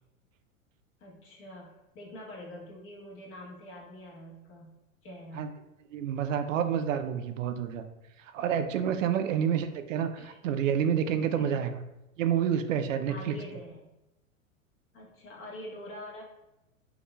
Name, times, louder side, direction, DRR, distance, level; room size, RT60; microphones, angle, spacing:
voice 1, 1.0-4.7 5.0-5.5 9.1-9.4 10.2-10.4 11.3-11.6 13.1-13.9 14.9-16.2, left 1 dB, 30° left, -2 dB, 1.1 m, -45 dB
voice 2, 5.9-7.9 8.3-11.8 12.2-13.4, right 8 dB, 65° right, 8 dB, 0.5 m, -28 dB
5.4 x 2.4 x 2.2 m, 0.93 s
figure-of-eight pair, 100°, 42 cm